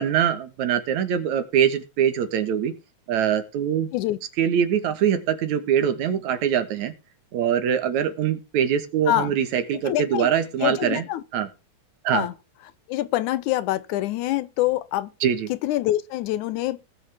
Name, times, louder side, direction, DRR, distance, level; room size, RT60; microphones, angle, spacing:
voice 1, 0.0-2.7 3.1-3.9 4.4-6.9 7.3-11.0 11.3-11.5 12.0-12.3 15.2-15.5, right 9 dB, 75° right, 2.7 m, -23 dB
voice 2, 9.9-10.3 10.6-11.2 12.1-12.3 12.9-15.1 15.5-16.9, left 15 dB, 85° left, 2.2 m, -25 dB
19.0 x 6.5 x 3.5 m
omnidirectional pair, 3.4 m